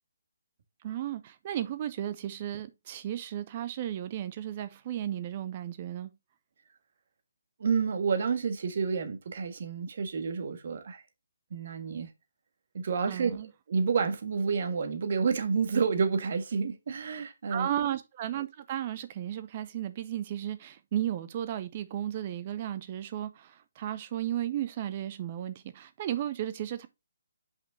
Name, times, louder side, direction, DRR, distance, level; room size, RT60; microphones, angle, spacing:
voice 1, 0.8-6.1 13.1-13.5 17.5-26.9, right 11 dB, 35° right, 0.6 m, -34 dB
voice 2, 7.6-11.0 11.5-12.1 12.7-17.7, right 5 dB, 50° right, 1.5 m, -29 dB
5.9 x 5.4 x 3.9 m
figure-of-eight pair, 140°, 0 cm